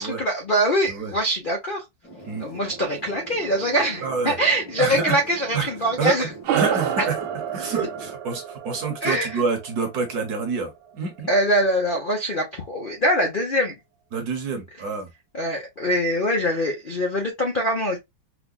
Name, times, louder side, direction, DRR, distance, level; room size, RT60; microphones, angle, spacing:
voice 1, 0.0-1.8 2.4-6.3 7.0-7.1 9.0-9.4 11.3-13.7 15.3-18.0, equal, 80° left, 0.4 m, -23 dB
sound 1, 2.0-8.2, right 3 dB, 55° left, 2.1 m, -43 dB
voice 2, 4.0-4.4 4.8-5.2 5.5-5.7 6.0-6.3 6.5-7.1 7.5-11.3 14.1-15.1, right 4 dB, 55° right, 1.3 m, -27 dB
sound 2, 6.4-11.2, right 9 dB, 80° right, 1.5 m, -29 dB
4.8 x 2.3 x 2.3 m
omnidirectional pair, 2.3 m